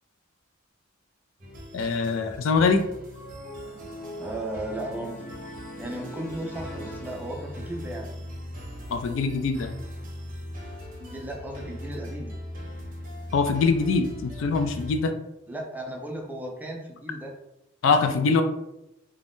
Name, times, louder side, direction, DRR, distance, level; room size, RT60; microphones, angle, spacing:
sound 1, 1.4-15.0, equal, 45° right, 0.7 m, -40 dB
voice 1, 1.7-2.8 8.9-9.7 13.3-15.1 17.8-18.4, left 4 dB, 70° left, 6 dB, 0.4 m, -23 dB
sound 2, 3.1-7.8, equal, 45° left, 0.9 m, -41 dB
voice 2, 4.2-5.1 5.8-8.1 11.0-12.3 15.5-17.3, right 1 dB, 10° right, 0 dB, 0.5 m, -35 dB
2.5 x 2.3 x 3.4 m, 0.87 s
head